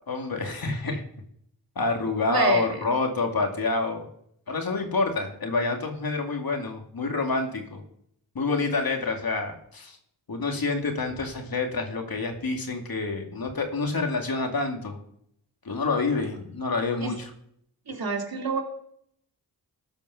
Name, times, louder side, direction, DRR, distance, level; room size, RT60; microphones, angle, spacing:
voice 1, 0.1-1.0 1.8-4.0 4.5-7.8 8.3-10.0 10.3-15.0 15.6-17.3, left 3 dB, 60° left, 3 dB, 2.4 m, -27 dB
voice 2, 2.3-2.7 17.0-17.1 17.9-18.6, right 4 dB, 60° right, 1 dB, 2.4 m, -27 dB
13.5 x 5.3 x 6.0 m, 0.69 s
cardioid pair, 50°, 40 cm